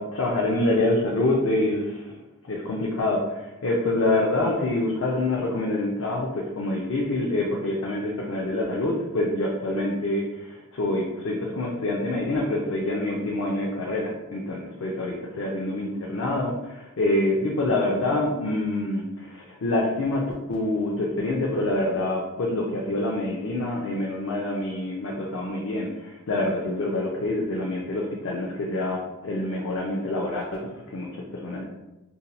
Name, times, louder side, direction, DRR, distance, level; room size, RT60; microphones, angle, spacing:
voice 1, 0.0-2.2 2.5-31.6, left 2 dB, 65° left, -2 dB, 0.5 m, -26 dB
2.7 x 2.2 x 4.0 m, 1.0 s
head